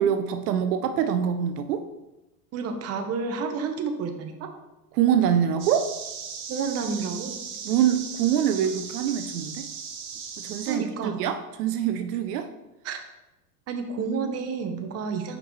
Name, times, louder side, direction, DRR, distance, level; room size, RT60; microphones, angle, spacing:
voice 1, 0.0-1.9 4.9-5.9 7.6-9.7 10.4-12.5, right 9 dB, 75° right, 8 dB, 0.6 m, -24 dB
voice 2, 2.5-4.5 6.5-7.4 10.7-11.2 12.8-13.0 13.7-15.4, right 5 dB, 30° right, 5 dB, 0.9 m, -30 dB
sound 1, 5.6-10.8, right 6 dB, 55° right, 1.5 m, -37 dB
5.7 x 5.2 x 3.1 m, 0.98 s
hypercardioid pair, 110°, 47 cm